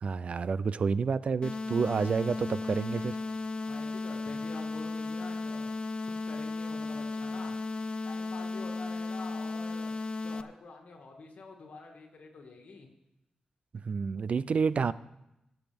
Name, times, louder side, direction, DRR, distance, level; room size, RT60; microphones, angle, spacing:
voice 1, 0.0-3.2 13.8-14.9, right 5 dB, 55° right, 17 dB, 0.3 m, -29 dB
sound 1, 1.4-10.4, left 3 dB, 40° left, 0.4 m, -35 dB
voice 2, 3.7-5.7 6.2-7.6 8.0-9.9 10.2-12.9, left 3 dB, 75° left, 1 dB, 2.1 m, -47 dB
18.0 x 7.9 x 3.5 m, 0.88 s
wide cardioid pair, 140°, 3 cm